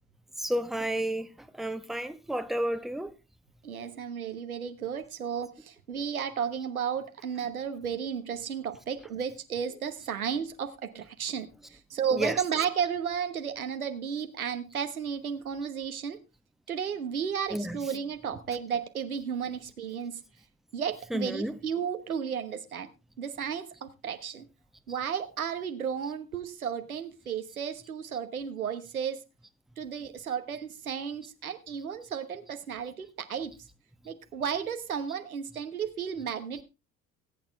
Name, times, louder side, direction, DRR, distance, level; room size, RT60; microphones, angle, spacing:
voice 1, 0.4-1.3 1.6-3.1 12.1-12.4 17.5-17.8 21.1-21.6, right 1 dB, ahead, 1.1 m, -31 dB
voice 2, 3.6-16.2 16.7-20.2 20.7-22.9 23.2-24.5 24.9-29.2 29.8-33.5 34.0-36.6, right 7 dB, 85° right, 1.2 m, -33 dB
19.0 x 8.8 x 3.4 m
figure-of-eight pair, 60°, 42 cm